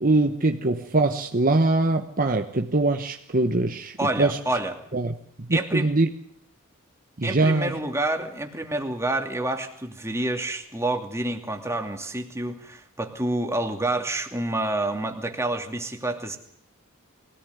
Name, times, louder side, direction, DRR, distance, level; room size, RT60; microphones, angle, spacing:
voice 1, 0.0-4.4 4.9-6.1 7.2-7.7, right 2 dB, 40° right, 4 dB, 1.2 m, -23 dB
voice 2, 4.0-4.8 5.5-5.9 7.2-16.4, right 2 dB, 15° right, 4 dB, 2.7 m, -28 dB
23.0 x 18.0 x 9.6 m, 0.68 s
head